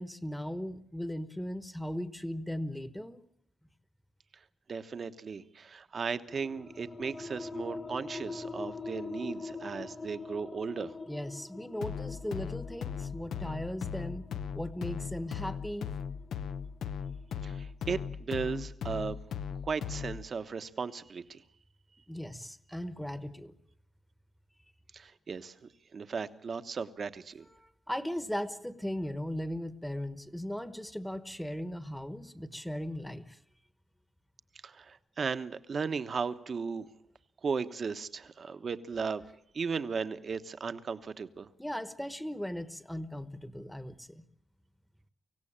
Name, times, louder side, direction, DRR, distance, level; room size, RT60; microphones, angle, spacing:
voice 1, 0.0-3.2 11.1-15.9 22.1-23.5 27.6-33.4 41.6-44.2, equal, 5° left, 13 dB, 1.2 m, -38 dB
voice 2, 4.7-10.9 17.4-19.2 19.6-21.4 24.9-25.6 25.9-27.4 34.6-36.9 37.4-39.2 39.5-41.5, right 5 dB, 40° right, 11 dB, 1.2 m, -36 dB
sound 1, 6.3-17.5, left 3 dB, 25° left, 0.9 m, -44 dB
sound 2, 11.8-20.3, left 7 dB, 85° left, 0.8 m, -38 dB
25.0 x 16.5 x 8.8 m, 0.75 s
wide cardioid pair, 135°, 0 cm